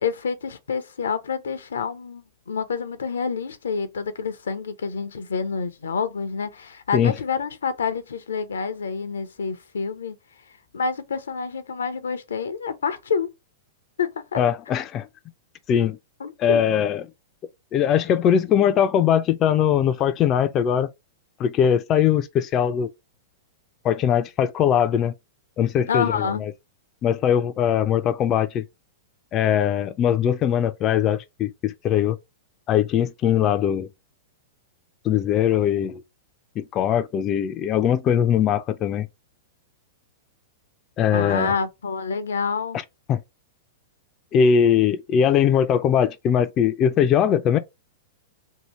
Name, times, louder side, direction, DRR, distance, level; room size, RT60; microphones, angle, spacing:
voice 1, 0.0-10.2 10.7-13.3 14.0-14.4 16.2-16.6 25.9-26.4 41.1-42.8, left 5 dB, 85° left, 0.5 m, -28 dB
voice 2, 14.3-15.1 15.7-16.0 16.4-17.0 17.7-20.9 21.4-22.9 23.8-25.1 25.6-26.5 27.0-28.6 29.3-32.2 32.7-33.9 35.0-36.0 36.6-39.1 41.0-41.5 43.1-43.2 44.3-47.6, left 9 dB, 35° left, 0.3 m, -21 dB
2.8 x 2.7 x 3.0 m
hypercardioid pair, 120°, 0 cm